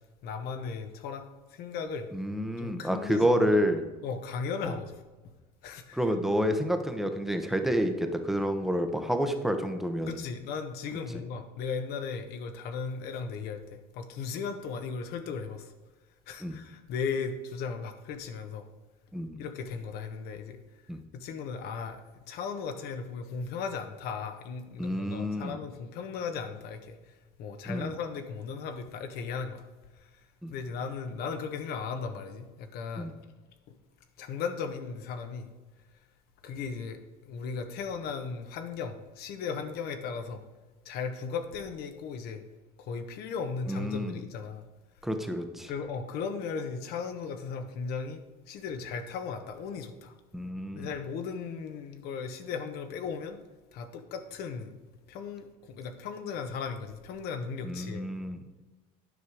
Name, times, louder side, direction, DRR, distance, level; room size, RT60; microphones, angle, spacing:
voice 1, 0.2-2.1 2.6-3.5 4.0-4.9 5.6-6.0 10.1-15.7 16.3-18.7 19.4-20.6 21.1-29.7 29.9-30.1 30.5-33.1 34.2-35.5 36.4-37.0 37.2-40.4 40.8-42.4 42.8-44.6 45.7-48.2 48.5-50.1 50.7-53.4 53.7-54.8 55.1-58.1, left 5 dB, 60° left, 8 dB, 1.1 m, -36 dB
voice 2, 2.1-3.8 4.6-4.7 5.9-10.2 16.4-16.6 19.1-19.4 20.9-21.0 24.8-25.6 27.7-27.9 30.4-30.5 33.0-33.1 43.7-44.2 45.0-45.7 50.3-50.9 57.6-58.4, equal, ahead, 6 dB, 0.9 m, -29 dB
9.7 x 5.6 x 4.8 m, 1.2 s
supercardioid pair, 115°, 18 cm